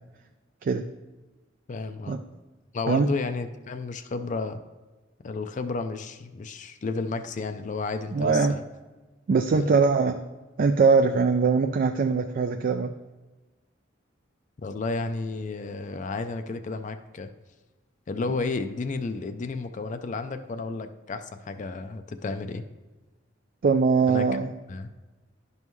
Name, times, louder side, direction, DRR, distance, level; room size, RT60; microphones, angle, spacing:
voice 1, 1.7-2.2 2.7-4.6 5.2-8.6 9.5-9.7 14.6-17.3 18.1-22.6 24.1-24.4 24.7-24.9, left 3 dB, 40° left, 9 dB, 0.4 m, -32 dB
voice 2, 8.1-8.6 9.3-10.2 10.6-12.9 23.6-24.5, right 4 dB, 45° right, 7 dB, 0.3 m, -22 dB
11.0 x 5.5 x 3.1 m, 1.2 s
head